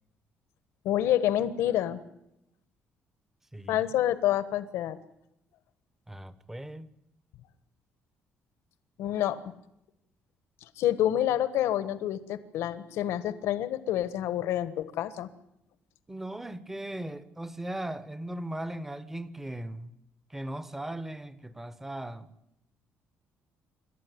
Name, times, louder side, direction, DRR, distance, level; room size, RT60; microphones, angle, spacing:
voice 1, 0.8-2.0 3.7-5.0 9.0-9.4 10.8-15.3, left 12 dB, 80° left, 13 dB, 1.5 m, -28 dB
voice 2, 3.5-3.8 6.1-6.9 16.1-19.9 20.3-22.3, right 1 dB, 5° right, 14 dB, 1.0 m, -38 dB
27.5 x 12.5 x 9.6 m, 0.83 s
cardioid pair, 160°, 4 cm